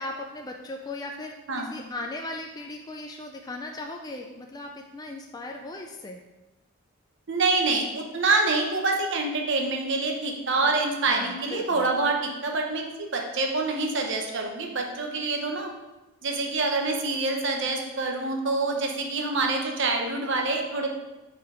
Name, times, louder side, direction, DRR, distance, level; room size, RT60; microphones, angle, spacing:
voice 1, 0.0-6.2 10.6-10.7 11.1-11.9, left 2 dB, 20° left, 2 dB, 0.4 m, -37 dB
voice 2, 1.5-1.8 7.3-15.7 16.2-20.9, right 3 dB, 55° right, 2 dB, 0.9 m, -26 dB
5.2 x 4.7 x 5.0 m, 1.0 s
head